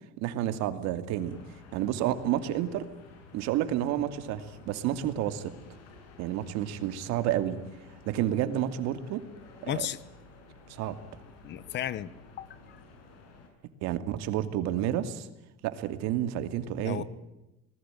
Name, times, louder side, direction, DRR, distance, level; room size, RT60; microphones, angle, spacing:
voice 1, 0.2-1.4 1.7-2.8 3.3-5.5 6.2-7.6 8.1-9.2 9.6-9.9 10.7-10.9 13.8-15.3 15.6-17.0, right 12 dB, 65° right, 10 dB, 2.6 m, -30 dB
sound 1, 1.1-13.5, left 3 dB, 60° left, 7.1 m, -52 dB
voice 2, 9.6-10.0 11.4-12.1 12.4-12.8 16.8-17.0, left 11 dB, 35° left, 19 dB, 1.2 m, -34 dB
26.5 x 20.0 x 9.2 m, 0.95 s
cardioid pair, 170°, 29 cm